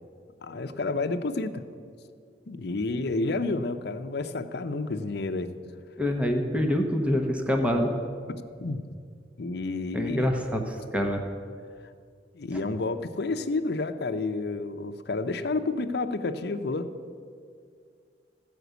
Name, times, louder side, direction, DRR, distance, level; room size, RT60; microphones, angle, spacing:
voice 1, 0.4-1.6 2.5-5.5 8.6-8.9 9.4-10.3 12.3-16.9, left 3 dB, 65° left, 7 dB, 0.7 m, -30 dB
voice 2, 6.0-7.9 9.9-11.2, equal, 5° right, 3 dB, 0.9 m, -26 dB
15.0 x 5.1 x 8.1 m, 2.2 s
head